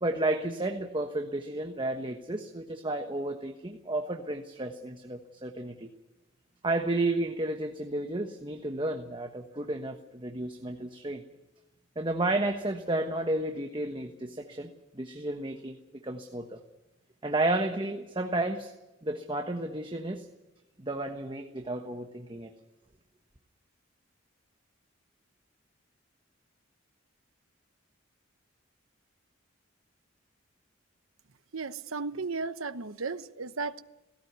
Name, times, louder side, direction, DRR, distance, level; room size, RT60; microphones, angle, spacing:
voice 1, 0.0-5.9 6.6-11.2 12.0-16.6 17.2-18.7 19.0-20.3 20.8-22.5, right 2 dB, 25° right, 1.2 m, -32 dB
voice 2, 31.5-33.8, right 4 dB, 90° right, 1.0 m, -35 dB
17.5 x 17.0 x 9.5 m
head